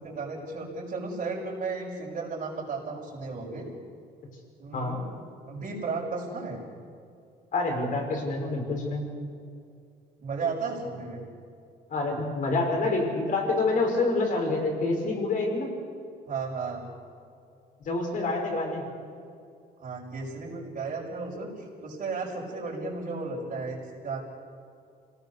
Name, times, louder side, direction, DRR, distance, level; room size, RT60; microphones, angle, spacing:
voice 1, 0.0-3.7 4.6-5.0 5.5-6.6 10.2-11.2 16.3-16.9 19.8-24.2, right 4 dB, 45° right, -8 dB, 5.8 m, -34 dB
voice 2, 7.5-9.0 11.9-15.7 17.8-18.9, left 3 dB, 50° left, 1 dB, 6.0 m, -27 dB
27.0 x 18.0 x 6.8 m, 2.4 s
cardioid pair, 110°, 17 cm